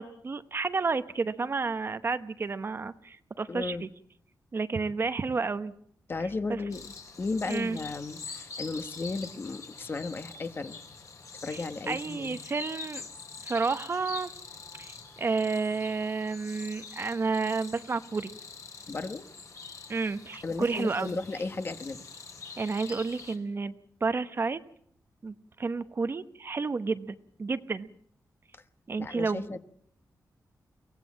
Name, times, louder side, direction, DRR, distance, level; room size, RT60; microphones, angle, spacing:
voice 1, 0.0-3.9 4.5-5.7 6.5-6.6 7.5-7.8 11.5-13.1 13.4-14.3 14.8-18.3 19.9-21.2 22.6-23.7 24.0-24.6 25.2-27.9 28.9-29.6, right 4 dB, 35° right, 11 dB, 0.9 m, -31 dB
voice 2, 3.5-3.8 6.1-6.8 7.2-10.8 11.4-12.4 18.9-19.2 20.4-22.0 28.5-28.6 29.0-29.6, left 3 dB, 35° left, 10 dB, 1.2 m, -34 dB
sound 1, 6.7-23.4, left 5 dB, 55° left, 3.8 m, -45 dB
23.5 x 18.0 x 7.4 m, 0.66 s
wide cardioid pair, 145°, 7 cm